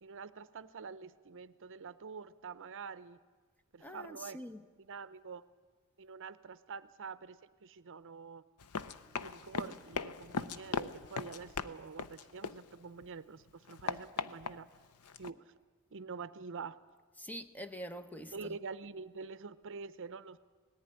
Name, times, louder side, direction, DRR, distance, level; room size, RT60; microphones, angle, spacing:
voice 1, 0.0-3.2 3.7-4.4 4.8-5.4 6.0-8.4 9.2-14.7 15.2-15.5 15.9-16.8 18.3-20.4, right 5 dB, 60° right, 0.6 m, -46 dB
voice 2, 3.8-4.6 17.2-18.6, equal, 5° left, 0.7 m, -45 dB
Run, 8.6-13.0 13.4-15.3, left 5 dB, 90° left, 0.7 m, -40 dB
18.5 x 14.5 x 9.9 m
head